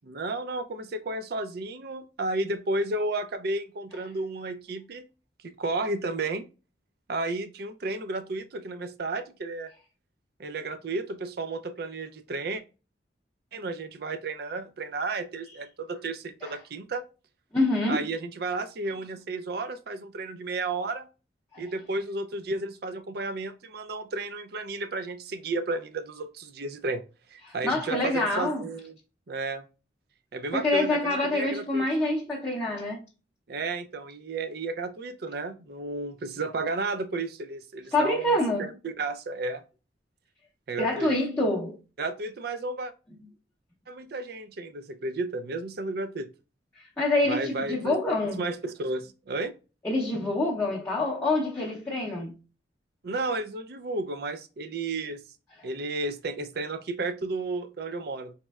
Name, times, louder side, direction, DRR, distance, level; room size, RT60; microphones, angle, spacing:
voice 1, 0.0-5.1 5.4-6.4 7.1-9.7 10.4-12.6 13.5-17.0 17.9-21.1 21.6-27.0 27.3-28.9 29.3-29.7 30.3-31.9 33.5-39.6 40.7-41.1 42.0-42.9 43.9-46.3 47.3-49.5 53.0-55.2 55.6-58.3, right 2 dB, 60° right, 0.5 m, -32 dB
voice 2, 17.5-18.1 21.5-21.6 27.5-28.7 30.5-33.0 37.9-38.7 40.8-41.8 46.8-48.4 49.8-52.3, left 2 dB, 15° left, 0.6 m, -26 dB
4.2 x 3.1 x 2.3 m
head